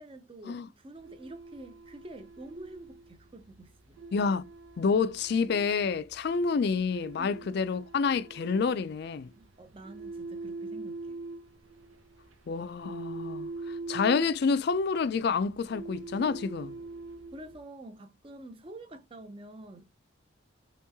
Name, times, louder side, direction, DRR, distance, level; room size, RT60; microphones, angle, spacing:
voice 1, 0.0-4.0 7.2-7.6 9.4-11.2 17.3-20.0, right 1 dB, 25° right, 0.5 m, -47 dB
sound 1, 1.0-17.6, right 3 dB, 85° right, 0.8 m, -44 dB
voice 2, 4.1-4.4 4.8-9.3 12.5-16.8, left 5 dB, 50° left, 0.3 m, -28 dB
3.0 x 3.0 x 3.4 m
head